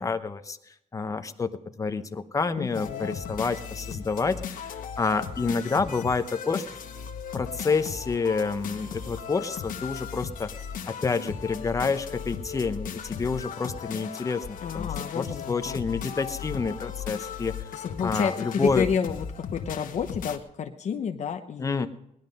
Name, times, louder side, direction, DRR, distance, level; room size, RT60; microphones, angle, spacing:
voice 1, 0.0-6.6 7.3-10.5 10.9-14.9 15.1-17.5 18.0-18.9 21.6-21.9, left 4 dB, 25° left, 9 dB, 0.9 m, -28 dB
voice 2, 2.6-3.1 14.6-15.8 17.7-21.9, left 7 dB, 55° left, 5 dB, 0.9 m, -30 dB
sound 1, 2.7-20.4, left 7 dB, 85° left, 1.4 m, -37 dB
19.0 x 11.5 x 5.4 m, 0.78 s
wide cardioid pair, 150°, 14 cm